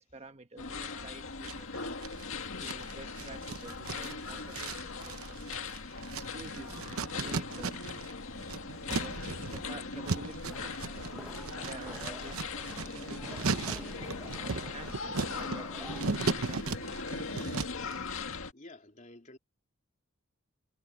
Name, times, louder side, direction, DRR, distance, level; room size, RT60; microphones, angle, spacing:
voice 1, 0.0-1.9 2.6-5.6 6.2-8.0 8.8-14.2 14.5-16.9, right 2 dB, 30° right, 1.2 m, -50 dB
sound 1, 0.6-18.5, left 4 dB, 70° left, 1.9 m, -40 dB
sound 2, 1.4-2.2 2.6-8.1 8.4-17.9, right 4 dB, 80° right, 0.9 m, -37 dB
sound 3, 10.5-16.0, equal, ahead, 1.0 m, -50 dB
voice 2, 18.5-19.4, left 2 dB, 35° left, 3.6 m, -51 dB
head